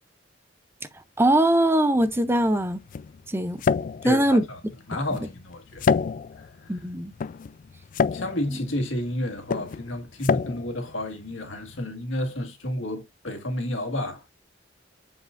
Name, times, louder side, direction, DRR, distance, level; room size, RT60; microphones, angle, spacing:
voice 1, 1.2-2.8 3.3-3.6 4.0-4.4 6.7-7.1 8.5-8.6, right 1 dB, 10° right, 0.5 m, -21 dB
sound 1, 2.0-11.8, left 5 dB, 45° left, 0.3 m, -29 dB
voice 2, 4.0-4.6 4.9-6.0 6.4-6.8 8.1-14.2, left 1 dB, 85° left, 1.7 m, -31 dB
7.1 x 5.6 x 2.5 m
head